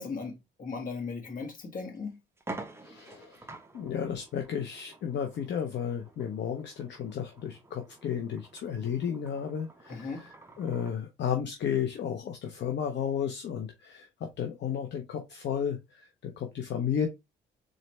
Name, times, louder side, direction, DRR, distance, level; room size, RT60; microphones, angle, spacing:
voice 1, 0.0-2.2 9.9-10.2, left 4 dB, 45° left, 1.6 m, -37 dB
sound 1, 1.4-1.5 1.9-2.0 2.4-11.0, right 2 dB, 10° right, 0.7 m, -48 dB
voice 2, 2.8-3.4 3.7-17.1, left 8 dB, 60° left, 0.8 m, -33 dB
3.9 x 3.2 x 3.2 m
cardioid pair, 90°, 20 cm